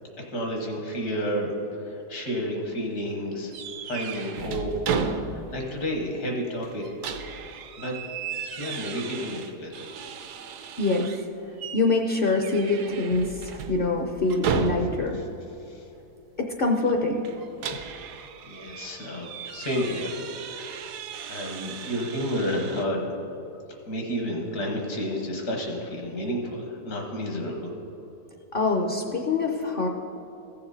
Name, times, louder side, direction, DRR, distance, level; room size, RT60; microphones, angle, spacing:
voice 1, 0.3-3.5 3.8-4.8 5.1-5.2 5.5-6.8 7.8-7.9 8.6-9.9 15.1-15.3 15.7-15.8 18.4-20.7 21.3-23.0 23.9-27.7, equal, 75° left, 1 dB, 1.9 m, -31 dB
sound 1, 3.5-5.7 6.0-6.1 6.6-11.3 11.6-11.9 12.3-15.2 17.2-22.8, right 6 dB, 80° right, 1.2 m, -34 dB
voice 2, 10.8-11.1 11.7-15.2 16.4-17.2 28.5-29.9, left 3 dB, 50° left, 3 dB, 0.7 m, -25 dB
15.0 x 7.0 x 4.0 m, 2.9 s
omnidirectional pair, 1.7 m